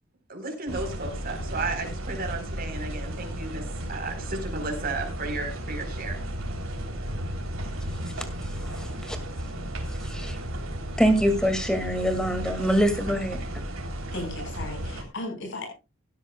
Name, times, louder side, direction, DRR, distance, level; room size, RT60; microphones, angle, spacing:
voice 1, 0.3-6.2, right 3 dB, 45° right, 4 dB, 4.2 m, -34 dB
sound 1, 0.7-15.0, right 1 dB, 75° right, 3.3 m, -34 dB
voice 2, 8.4-9.2 10.0-10.4 11.0-13.6, equal, 5° left, 7 dB, 2.2 m, -25 dB
voice 3, 14.1-15.7, left 2 dB, 60° left, 4 dB, 5.4 m, -35 dB
16.0 x 13.0 x 2.3 m, 0.28 s
head